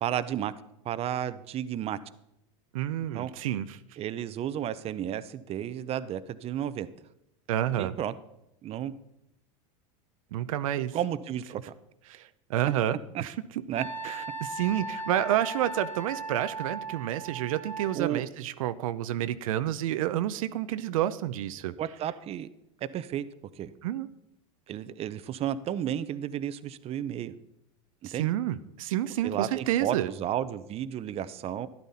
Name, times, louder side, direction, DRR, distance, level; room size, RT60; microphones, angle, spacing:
voice 1, 0.0-0.5 0.8-2.0 3.1-3.3 4.0-6.9 7.8-8.1 8.6-8.9 10.9-11.7 13.1-13.2 13.7-13.9 17.9-18.2 21.8-22.5 22.9-23.2 23.6-23.7 24.7-27.3 28.0-28.3 29.2-31.7, right 10 dB, 35° right, 14 dB, 0.7 m, -32 dB
voice 2, 2.7-3.8 7.5-7.9 10.3-11.0 12.1-13.3 14.0-21.7 23.8-24.1 28.0-30.1, right 12 dB, 85° right, 12 dB, 0.6 m, -29 dB
Wind instrument woodwind instrument, 13.8-18.0, right 2 dB, 10° left, 2.3 m, -37 dB
12.5 x 11.5 x 4.2 m, 0.85 s
supercardioid pair, 115°, 17 cm